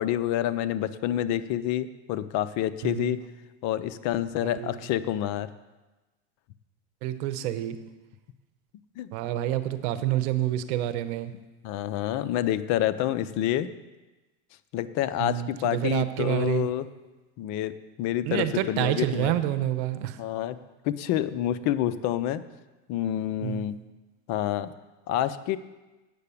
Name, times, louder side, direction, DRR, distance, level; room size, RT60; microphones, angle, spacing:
voice 1, 0.0-3.2 3.6-5.5 9.0-9.1 11.6-13.7 14.7-16.9 17.4-19.4 20.2-20.6 20.8-22.4 22.9-23.7 24.3-24.7 25.1-25.6, left 12 dB, 50° left, 13 dB, 0.6 m, -28 dB
voice 2, 2.8-3.1 4.4-4.8 7.0-7.8 9.1-11.3 15.2-16.7 18.2-20.2 23.4-23.7, right 13 dB, 70° right, 12 dB, 0.9 m, -28 dB
8.4 x 6.7 x 8.4 m, 1.1 s
supercardioid pair, 120°, 35 cm